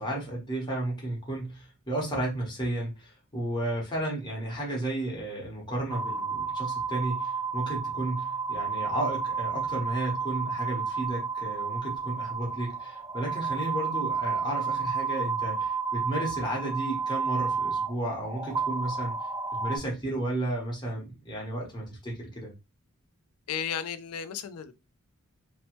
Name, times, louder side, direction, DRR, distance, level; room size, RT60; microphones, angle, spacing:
voice 1, 0.0-19.1 19.6-22.5, right 1 dB, 20° left, 1.0 m, -33 dB
sound 1, 5.9-19.8, right 5 dB, 15° right, 0.6 m, -31 dB
voice 2, 23.5-24.7, left 8 dB, 90° left, 0.4 m, -34 dB
2.9 x 2.0 x 2.9 m
head